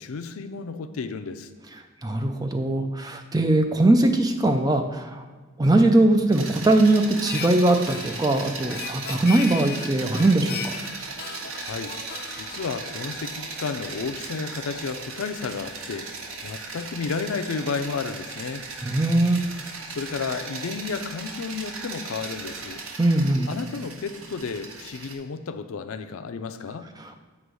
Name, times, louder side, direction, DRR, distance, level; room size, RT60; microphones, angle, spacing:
voice 1, 0.0-1.5 11.6-12.0 12.4-18.7 19.9-22.8 23.5-26.9, left 5 dB, 80° left, 9 dB, 0.5 m, -32 dB
voice 2, 2.0-5.2 5.6-10.7 18.8-19.4 23.0-23.5 27.0-27.2, right 2 dB, 20° right, 6 dB, 0.4 m, -21 dB
sound 1, 6.3-25.2, right 4 dB, 75° right, 0.8 m, -37 dB
Harmonica, 7.2-13.7, left 6 dB, 50° left, 0.8 m, -38 dB
7.8 x 2.9 x 6.2 m, 1.4 s
head